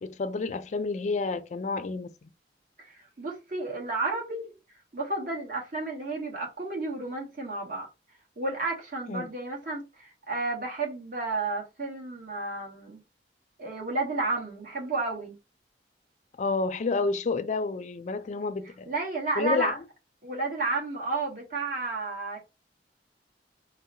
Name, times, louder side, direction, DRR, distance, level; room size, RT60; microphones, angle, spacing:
voice 1, 0.0-2.3 9.1-9.3 16.4-18.9 19.4-19.8, left 3 dB, 40° left, 0.4 m, -29 dB
voice 2, 2.8-4.5 4.9-7.9 8.4-13.0 13.6-15.3 18.9-19.8 20.2-22.4, right 3 dB, 50° right, 1.3 m, -32 dB
4.6 x 2.1 x 2.7 m
head